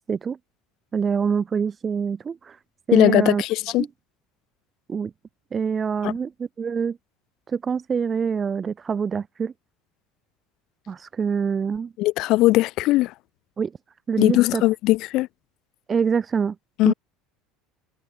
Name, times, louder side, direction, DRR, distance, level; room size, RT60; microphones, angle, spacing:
voice 1, 0.9-2.6 2.9-3.4 3.8-3.9 4.9-5.1 5.5-7.0 7.5-9.5 10.9-11.9 13.6-13.7 14.1-14.6 15.9-16.6 16.8-16.9, right 6 dB, 30° right, 0.7 m, -25 dB
voice 2, 2.9-3.8 6.0-6.1 12.0-13.1 14.2-15.3 16.8-16.9, left 18 dB, 60° left, 0.5 m, -19 dB
hypercardioid pair, 85°, 0 cm